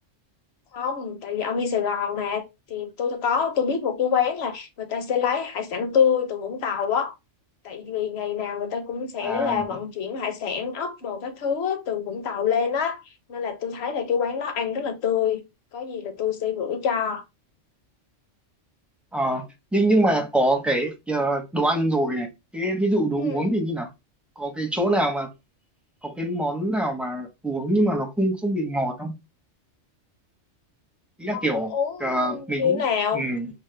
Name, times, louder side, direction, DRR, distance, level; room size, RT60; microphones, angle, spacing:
voice 1, 0.7-7.1 7.6-13.0 13.3-15.4 15.7-17.2 23.2-23.6 31.3-33.2, left 7 dB, 60° left, 1.0 m, -26 dB
voice 2, 9.2-9.7 19.1-19.5 19.7-23.9 24.4-25.3 26.0-29.1 31.2-31.7 32.0-32.8 33.1-33.5, right 1 dB, ahead, 0.4 m, -24 dB
4.9 x 2.1 x 3.2 m
omnidirectional pair, 1.3 m